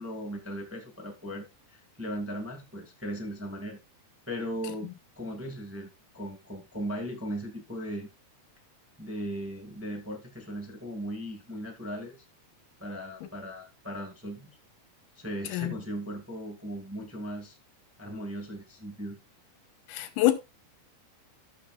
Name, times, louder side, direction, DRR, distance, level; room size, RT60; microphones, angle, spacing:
voice 1, 0.0-3.8 4.3-8.1 9.0-12.1 12.8-14.6 15.1-17.6 18.0-19.2, equal, 5° right, 1.3 m, -38 dB
voice 2, 19.9-20.3, left 14 dB, 85° left, 2.6 m, -25 dB
17.0 x 6.1 x 2.3 m
omnidirectional pair, 3.7 m